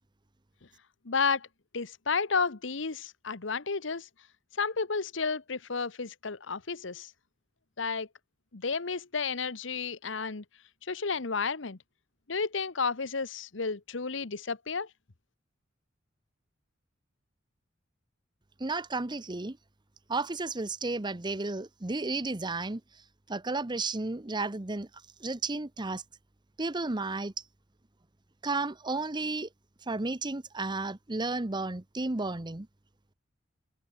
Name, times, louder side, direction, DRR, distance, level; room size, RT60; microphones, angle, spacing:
voice 1, 1.0-1.5 1.7-4.1 4.6-7.1 7.8-8.1 8.5-10.4 10.9-11.8 12.3-14.9, left 5 dB, 70° left, 1.2 m, -32 dB
voice 2, 18.6-19.6 20.1-22.8 23.3-24.9 25.2-26.0 26.6-27.3 28.4-29.5 29.9-32.7, right 3 dB, 25° right, 0.9 m, -32 dB
head